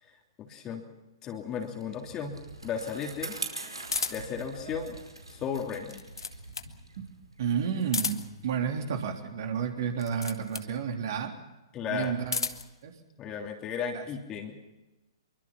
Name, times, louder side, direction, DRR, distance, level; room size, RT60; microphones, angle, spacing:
voice 1, 0.0-0.9 1.2-3.4 4.1-5.0 5.3-6.0 11.7-12.2 13.2-14.6, left 7 dB, 20° left, 2 dB, 3.1 m, -35 dB
Bicycle, 1.6-8.3, right 2 dB, 80° right, 4.8 m, -43 dB
sound 1, 3.9-4.4 5.7-6.8 7.8-8.5 9.9-10.7 12.0-12.7, left 4 dB, 70° left, 1.5 m, -34 dB
voice 2, 7.4-11.3 11.9-12.4 12.8-12.9 13.9-14.0, right 7 dB, 50° right, 3 dB, 3.6 m, -31 dB
25.5 x 23.5 x 5.9 m, 1.0 s
figure-of-eight pair, 120°, 3 cm